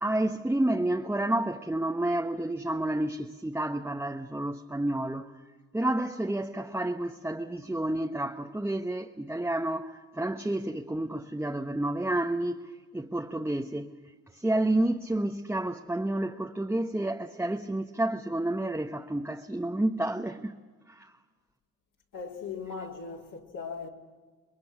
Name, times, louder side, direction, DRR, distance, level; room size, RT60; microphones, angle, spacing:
voice 1, 0.0-5.3 5.7-13.9 14.3-20.6 20.9-21.1, right 1 dB, 5° right, 1.0 m, -30 dB
voice 2, 22.1-23.9, left 5 dB, 60° left, 3.6 m, -38 dB
27.5 x 21.5 x 6.1 m
supercardioid pair, 65°, 37 cm